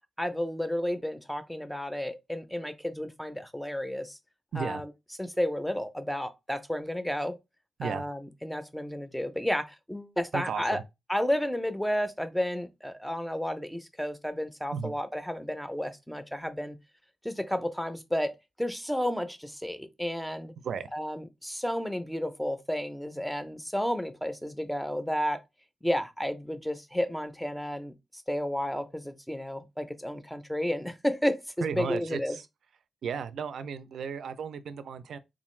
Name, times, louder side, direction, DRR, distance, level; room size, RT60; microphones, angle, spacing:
voice 1, 0.2-4.2 4.6-4.9 5.2-7.4 7.8-10.8 11.1-16.8 17.2-20.5 20.9-25.4 25.8-32.4, equal, ahead, 0.5 m, -32 dB
voice 2, 4.5-4.8 7.8-8.0 10.3-10.8 14.7-14.9 20.6-20.9 31.6-32.5 33.0-35.2, right 6 dB, 85° right, 0.4 m, -34 dB
3.7 x 2.4 x 3.1 m
wide cardioid pair, 125°, 0 cm